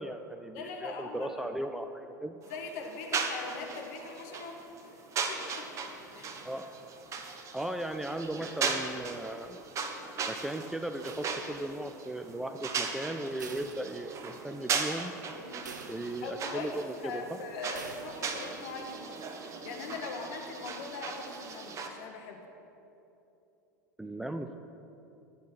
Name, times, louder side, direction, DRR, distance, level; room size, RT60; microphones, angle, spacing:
voice 1, 0.0-2.4 6.4-6.7 7.5-9.6 10.3-15.1 15.9-17.4 24.0-24.5, right 1 dB, 5° right, 6 dB, 0.4 m, -37 dB
voice 2, 0.5-1.6 2.5-4.6 5.3-5.7 6.1-6.3 15.3-15.6 16.2-16.7 17.0-19.1 19.4-22.4, left 4 dB, 50° left, 2 dB, 1.7 m, -41 dB
sound 1, 2.4-21.9, right 5 dB, 30° right, 1.1 m, -38 dB
sound 2, 11.1-11.9 13.4-14.5 14.9-15.0 15.7-16.5 17.7-18.5, right 5 dB, 70° right, 0.8 m, -47 dB
12.0 x 8.3 x 6.1 m, 2.9 s
figure-of-eight pair, 80°, 10 cm